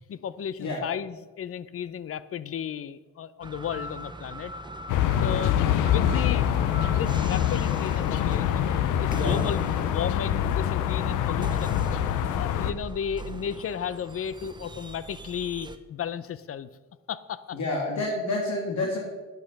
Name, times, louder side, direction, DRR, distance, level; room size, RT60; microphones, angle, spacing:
voice 1, 0.1-4.5 5.2-5.6 5.8-6.5 6.9-11.8 12.1-16.7 17.1-17.6 17.9-18.2 18.6-18.9, left 8 dB, 50° left, 16 dB, 0.7 m, -34 dB
sound 1, 3.4-15.8, right 2 dB, 15° right, 0.8 m, -41 dB
sound 2, 4.9-12.7, left 10 dB, 90° left, 0.8 m, -25 dB
voice 2, 17.5-19.0, left 2 dB, 65° left, -1 dB, 2.4 m, -28 dB
12.0 x 9.2 x 5.4 m, 1.2 s
cardioid pair, 90°, 30 cm